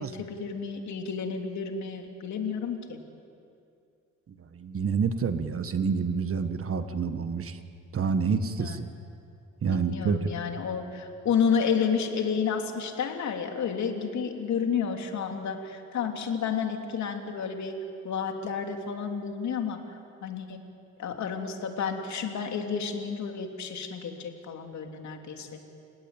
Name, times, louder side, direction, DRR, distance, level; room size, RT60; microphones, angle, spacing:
voice 1, 0.0-3.0 8.6-8.9 9.7-17.8 18.0-19.8 20.2-20.6 21.0-25.6, left 6 dB, 65° left, 3 dB, 3.2 m, -31 dB
voice 2, 4.5-7.6 7.9-8.9 9.6-10.3, right 5 dB, 45° right, 9 dB, 1.6 m, -28 dB
30.0 x 17.5 x 9.1 m, 2.5 s
cardioid pair, 90°, 30 cm